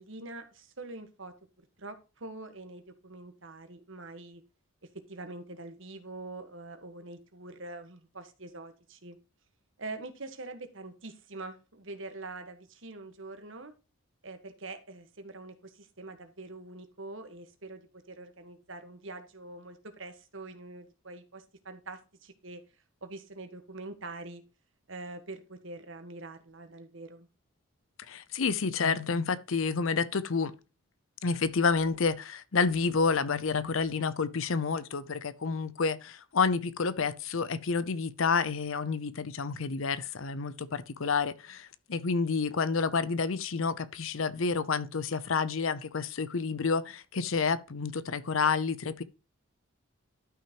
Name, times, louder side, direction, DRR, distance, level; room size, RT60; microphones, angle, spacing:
voice 1, 0.0-1.3 1.8-4.4 5.1-9.2 9.8-13.7 14.2-17.8 18.1-22.6 23.0-24.4 24.9-27.3, right 2 dB, 60° right, 1.5 m, -44 dB
voice 2, 28.1-30.5 31.2-49.0, left 5 dB, 70° left, 0.6 m, -29 dB
12.0 x 5.7 x 3.0 m
head